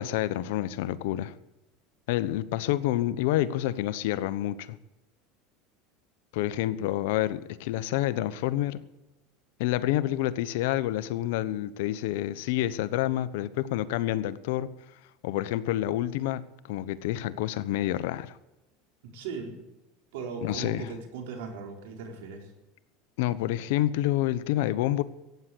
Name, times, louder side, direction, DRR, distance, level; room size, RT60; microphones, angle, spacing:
voice 1, 0.0-1.3 2.1-4.8 6.3-8.8 9.6-14.7 15.2-18.4 20.4-20.9 23.2-25.0, left 14 dB, 75° left, 15 dB, 1.0 m, -28 dB
voice 2, 19.0-19.6 20.1-22.5, right 5 dB, 80° right, 3 dB, 4.2 m, -38 dB
15.0 x 9.4 x 8.4 m, 1.0 s
supercardioid pair, 125°, 0 cm